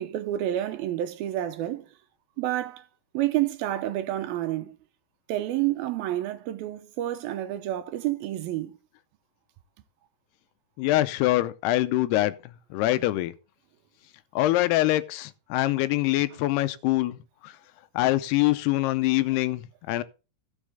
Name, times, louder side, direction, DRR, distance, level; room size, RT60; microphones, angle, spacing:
voice 1, 0.0-1.9 2.4-2.9 3.1-4.8 5.3-8.8, right 13 dB, 75° right, 2.4 m, -29 dB
voice 2, 10.8-13.3 14.4-17.6 17.9-20.0, left 16 dB, 85° left, 2.7 m, -24 dB
17.0 x 6.4 x 3.5 m
omnidirectional pair, 4.6 m